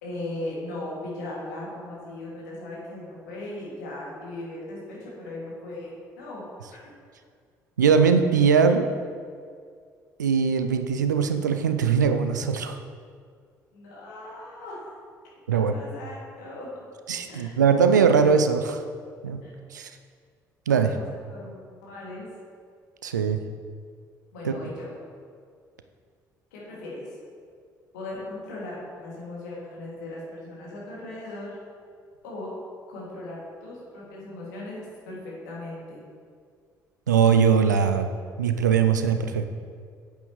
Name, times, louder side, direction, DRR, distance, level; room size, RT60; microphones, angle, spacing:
voice 1, 0.0-6.8 13.7-14.9 15.5-16.7 17.3-17.6 19.4-19.5 20.8-21.5 21.8-22.3 24.3-24.9 26.5-27.2 27.9-31.6 32.2-32.5 32.9-36.0, left 2 dB, 75° left, -5 dB, 2.3 m, -38 dB
voice 2, 7.8-8.9 10.2-12.8 15.5-15.7 17.1-18.8 19.2-19.4 19.7-19.9 20.7-20.9 23.0-23.4 24.4-24.5 37.1-38.1 38.4-39.5, right 6 dB, 85° right, 8 dB, 0.4 m, -21 dB
8.5 x 8.4 x 3.1 m, 2.1 s
figure-of-eight pair, 50°, 9 cm